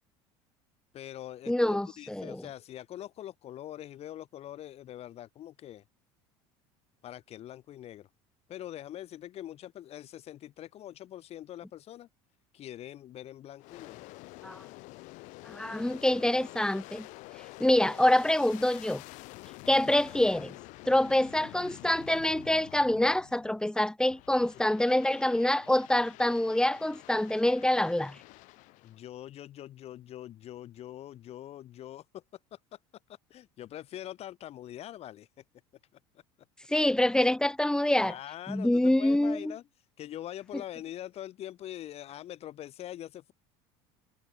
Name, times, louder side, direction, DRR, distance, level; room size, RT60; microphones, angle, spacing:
voice 1, 0.9-5.8 7.0-8.1 8.5-12.1 12.5-14.1 28.8-32.2 32.5-32.8 33.1-35.3 38.0-39.6 40.0-43.3, left 12 dB, 50° left, 4.5 m, -43 dB
voice 2, 1.5-2.4 14.4-14.6 15.5-17.1 17.6-19.0 19.7-20.5 20.8-28.1 36.7-38.1 38.5-39.5, left 1 dB, 5° left, 1.3 m, -26 dB
Aircraft, 13.6-23.6 24.1-29.1, left 22 dB, 65° left, 5.6 m, -48 dB
supercardioid pair, 95°, 14 cm